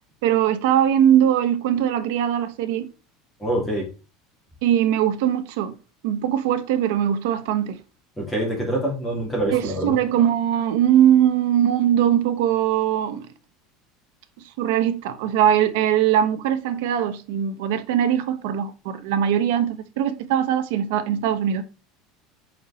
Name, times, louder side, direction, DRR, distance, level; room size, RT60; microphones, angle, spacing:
voice 1, 0.2-2.9 4.6-5.7 6.0-7.8 9.5-13.3 14.6-21.6, right 10 dB, 75° right, 1.0 m, -21 dB
voice 2, 3.4-3.9 8.2-9.9, right 1 dB, 5° left, 2.8 m, -25 dB
5.2 x 4.7 x 4.2 m
cardioid pair, 170°, 0 cm